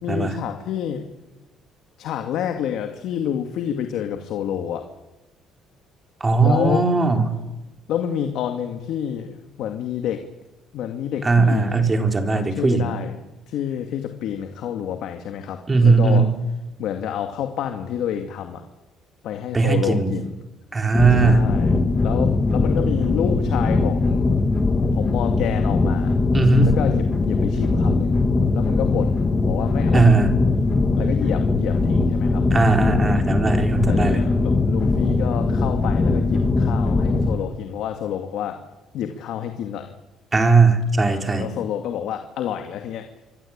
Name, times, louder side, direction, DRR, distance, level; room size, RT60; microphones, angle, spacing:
voice 1, 0.0-1.0 2.0-4.9 6.4-6.9 7.9-10.2 10.7-11.9 12.3-13.1 13.5-16.3 16.8-18.6 19.2-20.3 21.2-24.2 24.9-26.2 26.6-28.2 28.5-30.1 31.0-32.5 33.9-38.6 38.9-39.9 41.1-43.1, left 9 dB, 70° left, 5 dB, 2.4 m, -28 dB
voice 2, 6.2-7.4 11.2-13.0 15.7-16.4 19.5-20.1 20.7-21.5 26.3-26.7 29.9-30.3 32.5-34.2 40.3-41.5, right 4 dB, 20° right, 4 dB, 4.1 m, -18 dB
sound 1, 20.9-37.3, left 3 dB, 20° left, 2.9 m, -20 dB
27.5 x 23.0 x 9.0 m, 1.1 s
cardioid pair, 125°, 0 cm